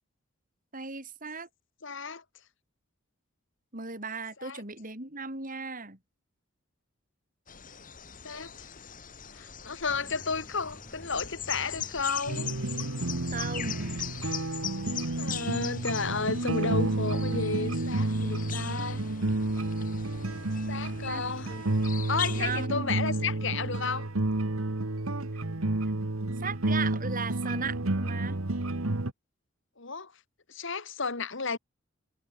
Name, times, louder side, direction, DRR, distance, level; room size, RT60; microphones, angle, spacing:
voice 1, 0.7-1.5 3.7-6.0 13.3-14.0 21.1-21.2 21.5-21.8 22.3-23.0 26.4-28.4, right 4 dB, 40° right, 6.2 m, -37 dB
voice 2, 1.8-2.2 4.4-4.6 8.2-8.7 9.3-12.5 15.2-19.0 20.7-21.5 22.1-24.1 29.8-30.1 30.5-31.6, left 4 dB, 60° left, 2.1 m, -32 dB
sound 1, 7.5-22.7, left 9 dB, 40° left, 3.5 m, -41 dB
sound 2, 9.9-21.8, equal, 10° left, 7.6 m, -51 dB
sound 3, 12.3-29.1, right 2 dB, 85° right, 1.5 m, -30 dB
head